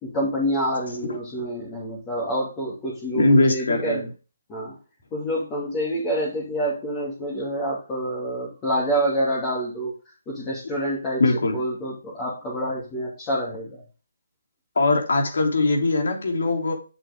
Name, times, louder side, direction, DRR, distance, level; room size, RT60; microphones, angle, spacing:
voice 1, 0.0-4.0 4.5-4.8 5.1-11.2 11.5-13.8, equal, 15° left, -6 dB, 2.7 m, -27 dB
voice 2, 3.1-4.1 11.2-11.6 14.7-16.7, left 2 dB, 70° left, 1 dB, 3.4 m, -20 dB
8.0 x 7.2 x 3.7 m, 0.33 s
hypercardioid pair, 160°, 0 cm